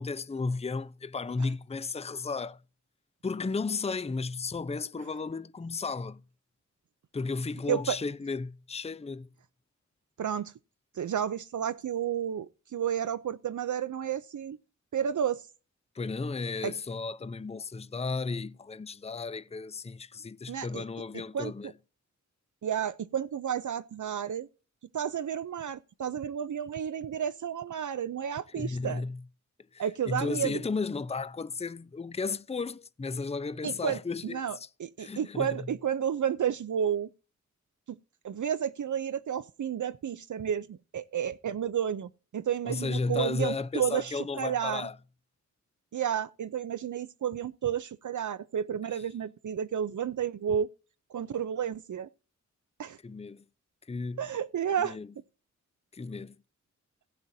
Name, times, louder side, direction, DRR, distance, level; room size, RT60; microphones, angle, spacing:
voice 1, 0.0-2.6 3.2-6.2 7.1-9.3 15.9-21.7 28.5-29.2 29.7-34.7 35.0-35.7 42.6-45.0 48.9-49.0 53.0-53.4 53.9-54.2 54.8-55.1 55.9-56.4, left 4 dB, 20° left, 0.5 m, -34 dB
voice 2, 10.2-10.5 10.9-14.6 14.9-15.5 16.6-16.7 20.5-20.8 21.3-21.7 22.6-24.5 24.9-29.0 29.8-30.6 33.6-37.1 38.2-44.9 45.9-50.7 51.1-52.1 52.8-53.0 54.2-55.0, right 8 dB, 75° right, 0.6 m, -31 dB
16.5 x 8.9 x 2.7 m
wide cardioid pair, 65°, 30 cm